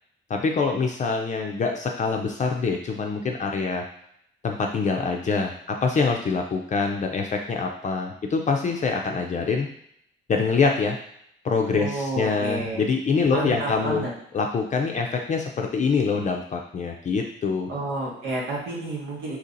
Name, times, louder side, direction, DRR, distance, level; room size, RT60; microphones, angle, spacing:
voice 1, 0.3-3.8 4.4-9.7 10.3-11.0 11.4-14.1 14.3-17.7, left 4 dB, 40° left, 2 dB, 0.5 m, -25 dB
voice 2, 11.7-12.8 13.3-14.1 17.7-19.4, right 2 dB, 85° right, -4 dB, 1.4 m, -30 dB
2.9 x 2.8 x 3.8 m, 0.71 s
cardioid pair, 90°, 20 cm